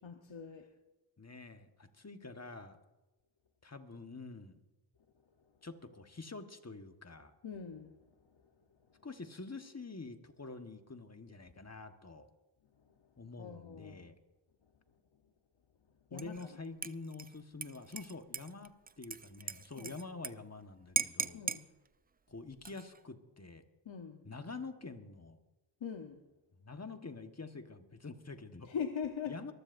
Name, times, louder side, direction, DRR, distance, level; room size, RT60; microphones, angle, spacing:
voice 1, 0.0-0.7 7.4-8.0 13.4-14.1 16.1-16.6 19.8-19.9 21.3-21.7 23.8-24.2 25.8-26.2 28.7-29.4, left 7 dB, 75° left, 4 dB, 1.1 m, -42 dB
voice 2, 1.2-2.8 3.6-4.6 5.6-7.3 9.0-12.3 13.2-14.1 16.1-21.4 22.3-23.6 24.2-25.4 26.6-28.7 29.3-29.5, left 3 dB, 35° left, 7 dB, 1.4 m, -47 dB
Dishes pots and pans / Liquid, 16.2-16.5 16.8-20.3 20.6-20.7 21.0-21.6 22.5-23.0, right 5 dB, 20° right, 0.3 m, -38 dB
23.0 x 15.0 x 2.6 m, 1.1 s
cardioid pair, 40°, 46 cm